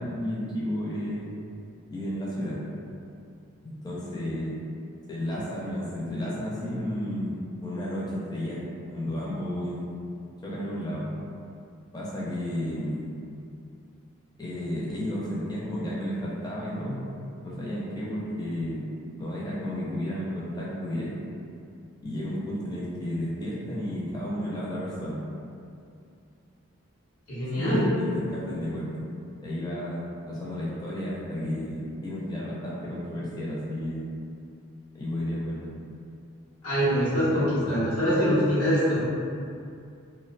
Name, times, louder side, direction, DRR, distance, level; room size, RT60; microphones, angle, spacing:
voice 1, 0.0-1.3 1.9-2.6 3.6-4.6 5.1-8.6 8.9-9.8 10.4-11.1 11.9-13.1 14.4-17.1 17.4-18.9 19.2-21.1 22.0-25.2 27.5-28.9 29.4-34.1 34.9-35.7, left 1 dB, 20° left, -7 dB, 0.4 m, -32 dB
voice 2, 27.3-28.0 36.6-39.0, equal, 80° left, -11 dB, 0.8 m, -24 dB
2.5 x 2.1 x 2.5 m, 2.5 s
head